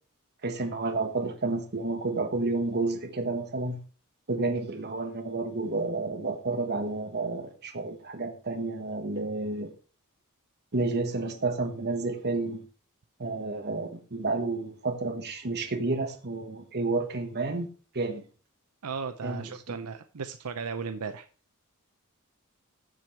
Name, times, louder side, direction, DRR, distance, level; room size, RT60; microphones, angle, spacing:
voice 1, 0.4-3.8 4.3-9.7 10.7-12.6 13.2-17.7 17.9-18.2 19.2-19.8, right 3 dB, 50° right, 1.4 m, -30 dB
voice 2, 18.8-21.3, right 5 dB, 85° right, 0.7 m, -36 dB
7.8 x 7.5 x 4.5 m
head